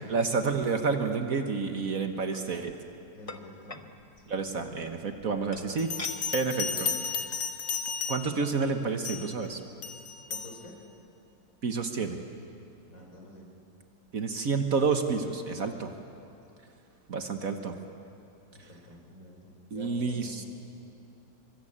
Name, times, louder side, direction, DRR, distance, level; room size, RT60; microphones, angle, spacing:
voice 1, 0.1-2.7 4.3-5.9 6.3-6.9 8.1-9.6 11.6-12.2 14.1-15.9 17.1-17.7 19.7-20.4, right 4 dB, 55° right, 6 dB, 1.7 m, -29 dB
Glass dishes, 2.3-2.5 3.3-3.9 5.5-6.2 6.7-6.8 7.1-7.4 8.3-8.4 8.6-8.8, left 3 dB, 25° left, 0.9 m, -42 dB
voice 2, 3.1-3.8 4.2-4.4 10.3-10.8 12.8-13.5 18.5-20.5, left 1 dB, 50° left, 0 dB, 4.7 m, -49 dB
Bell, 5.8-8.5 9.0-9.4 9.8-10.5, left 5 dB, 70° left, 2.3 m, -33 dB
25.0 x 24.5 x 8.8 m, 2.7 s
omnidirectional pair, 1.8 m